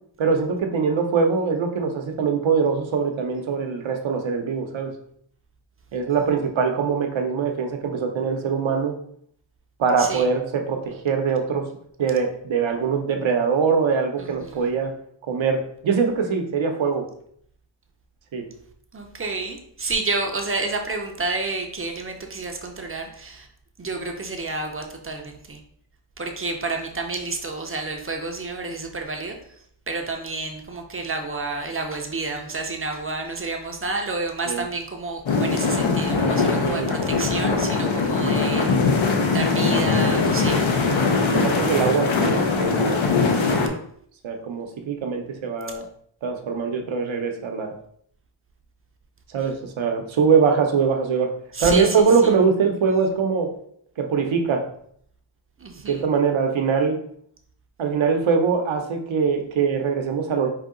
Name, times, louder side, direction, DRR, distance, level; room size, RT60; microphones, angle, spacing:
voice 1, 0.2-4.9 5.9-8.9 9.8-11.7 12.0-14.9 15.3-17.1 18.3-18.4 34.5-34.7 36.4-36.9 41.3-43.0 44.2-45.9 46.2-47.7 49.3-51.3 51.6-53.5 54.0-54.6 55.9-57.0 57.8-60.5, right 5 dB, 85° right, 4 dB, 0.8 m, -22 dB
voice 2, 18.9-23.4 23.8-25.2 25.5-25.6 26.2-29.4 29.9-38.7 39.3-40.6 51.6-51.9 55.6-56.0, right 3 dB, 30° right, 3 dB, 0.5 m, -29 dB
sound 1, 35.3-43.7, left 4 dB, 90° left, 0.9 m, -21 dB
4.9 x 2.7 x 3.7 m, 0.66 s
wide cardioid pair, 175°, 45 cm